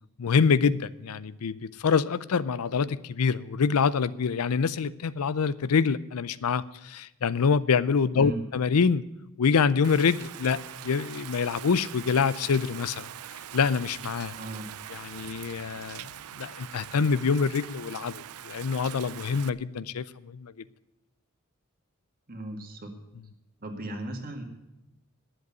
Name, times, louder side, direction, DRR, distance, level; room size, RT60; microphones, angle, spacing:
voice 1, 0.2-9.0 9.4-13.1 13.5-14.3 14.9-16.1 16.4-20.5, left 5 dB, 90° left, 17 dB, 0.5 m, -26 dB
Rain, 9.8-19.5, right 11 dB, 90° right, 0.5 m, -43 dB
voice 2, 14.4-14.7 22.3-23.0 23.6-24.4, right 2 dB, 40° right, 4 dB, 1.9 m, -37 dB
10.5 x 7.8 x 9.5 m, 0.93 s
head